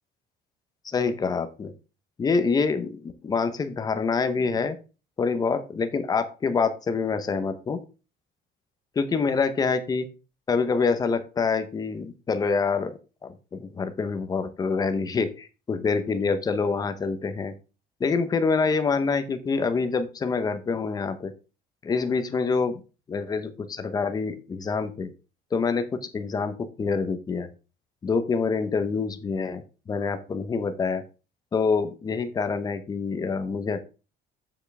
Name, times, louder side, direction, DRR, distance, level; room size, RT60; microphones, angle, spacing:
voice 1, 0.8-1.7 2.2-4.8 5.2-7.8 9.0-10.1 10.5-17.5 18.0-21.3 21.8-22.7 23.1-25.1 25.5-25.9 26.1-27.5 28.0-31.0 31.5-33.8, left 4 dB, 20° left, 9 dB, 0.8 m, -26 dB
7.3 x 7.1 x 3.4 m, 0.32 s
cardioid pair, 175°, 18 cm